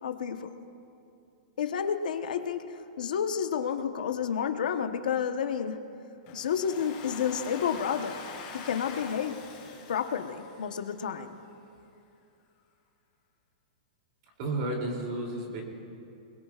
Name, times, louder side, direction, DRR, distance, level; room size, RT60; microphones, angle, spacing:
voice 1, 0.0-0.5 1.6-5.9 6.3-8.2 8.5-9.4 9.9-11.4, left 7 dB, 75° left, 7 dB, 1.0 m, -30 dB
Domestic sounds home sounds, 6.3-11.2, left 4 dB, 30° left, 4.5 m, -44 dB
voice 2, 14.4-15.6, right 2 dB, 35° right, 0 dB, 2.9 m, -32 dB
27.5 x 21.5 x 2.4 m, 2.7 s
supercardioid pair, 175°, 4 cm